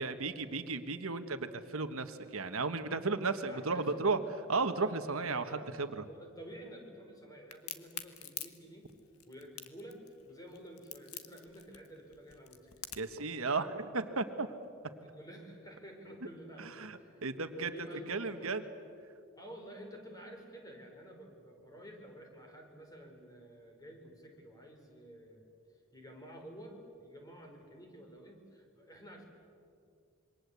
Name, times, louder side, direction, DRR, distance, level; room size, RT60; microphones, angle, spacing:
voice 1, 0.0-4.2 4.5-6.0 13.0-14.5 16.8-17.7 18.1-18.6, right 3 dB, 70° right, 9 dB, 1.4 m, -34 dB
voice 2, 3.0-4.2 5.3-5.7 6.1-8.9 9.3-10.0 10.3-12.8 14.9-18.6 19.4-25.5 25.9-29.2, equal, 15° left, 3 dB, 4.2 m, -51 dB
Crack, 7.5-13.2, left 11 dB, 85° left, 1.5 m, -45 dB
27.0 x 23.0 x 8.2 m, 2.4 s
head